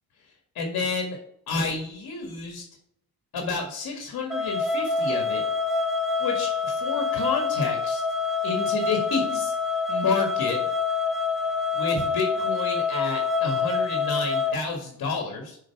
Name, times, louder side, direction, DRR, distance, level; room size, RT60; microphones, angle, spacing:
voice 1, 0.6-1.2 1.5-2.6 3.3-5.4 6.2-8.0 8.4-9.5 9.9-10.6 11.7-15.6, left 4 dB, 65° left, 1 dB, 1.9 m, -30 dB
sound 1, 4.3-14.5, left 4 dB, ahead, 1.3 m, -26 dB
6.6 x 4.7 x 4.7 m, 0.69 s
cardioid pair, 100°, 39 cm